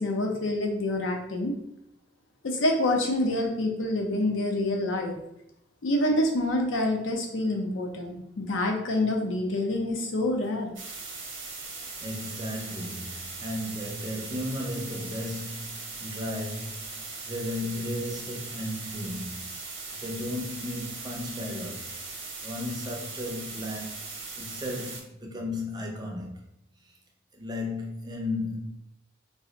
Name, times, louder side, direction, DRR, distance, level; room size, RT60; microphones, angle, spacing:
voice 1, 0.0-1.6 2.4-5.2 5.8-10.7, left 1 dB, 80° left, 0.5 m, -27 dB
sound 1, 10.8-25.0, right 4 dB, 70° right, 0.7 m, -39 dB
voice 2, 12.0-22.0 22.4-24.0 24.4-26.4 27.3-28.8, left 1 dB, 20° right, 0.4 m, -35 dB
2.5 x 2.0 x 3.8 m
head